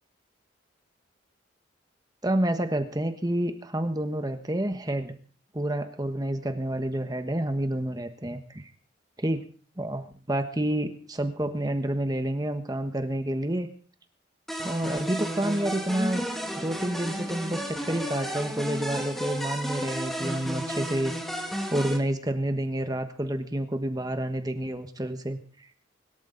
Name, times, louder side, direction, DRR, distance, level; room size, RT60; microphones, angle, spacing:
voice 1, 2.2-5.1 5.5-8.7 9.2-9.4 9.8-13.7 14.6-16.2 16.6-25.7, right 1 dB, 20° right, 7 dB, 1.2 m, -29 dB
sound 1, 14.5-22.0, equal, ahead, 2.3 m, -33 dB
24.5 x 13.0 x 3.9 m, 0.41 s
head